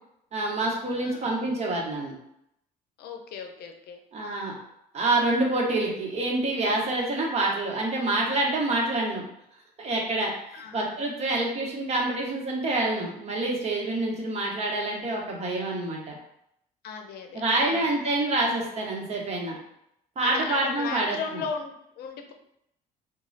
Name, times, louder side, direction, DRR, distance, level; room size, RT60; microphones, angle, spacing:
voice 1, 0.3-2.1 4.1-4.5 4.9-9.2 9.8-16.2 17.3-19.6 20.2-21.4, right 2 dB, 40° right, -1 dB, 1.0 m, -27 dB
voice 2, 1.0-1.3 3.0-4.6 7.0-7.2 10.5-10.8 16.8-17.4 17.7-18.0 20.2-22.3, left 6 dB, 70° left, 4 dB, 0.6 m, -37 dB
3.0 x 2.3 x 4.0 m, 0.77 s
cardioid pair, 110°, 17 cm